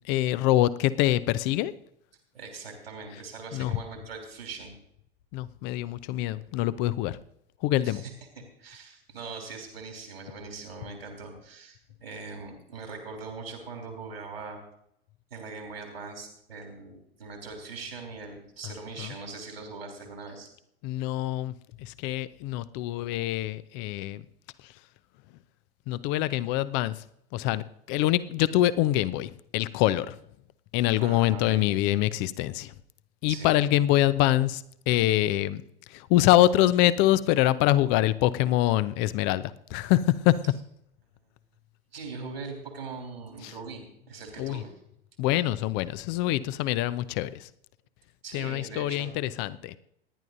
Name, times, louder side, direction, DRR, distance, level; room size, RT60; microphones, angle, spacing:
voice 1, 0.1-1.7 3.5-3.7 5.3-7.2 7.6-8.0 19.0-19.1 20.8-21.5 21.8-24.2 25.9-27.0 27.3-30.2 30.7-32.7 33.2-35.6 35.9-40.4 43.4-43.5 44.4-44.6 45.2-47.5 48.3-49.8, left 14 dB, 35° left, 16 dB, 0.7 m, -25 dB
voice 2, 2.3-4.7 7.8-14.6 15.3-20.5 31.0-31.6 33.3-33.6 41.9-44.7 48.2-49.1, right 4 dB, 75° right, 2 dB, 3.1 m, -41 dB
27.5 x 10.5 x 2.6 m, 0.74 s
figure-of-eight pair, 90°, 31 cm